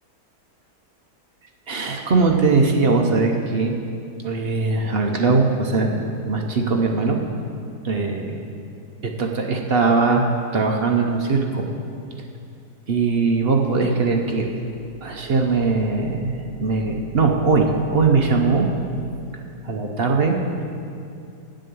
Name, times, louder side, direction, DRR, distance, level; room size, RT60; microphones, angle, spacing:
voice 1, 1.7-3.7 4.2-7.2 7.8-8.5 9.2-11.7 12.9-14.5 15.0-18.7 19.6-20.4, right 4 dB, 50° right, 2 dB, 0.7 m, -20 dB
9.0 x 7.5 x 6.9 m, 2.5 s
omnidirectional pair, 1.8 m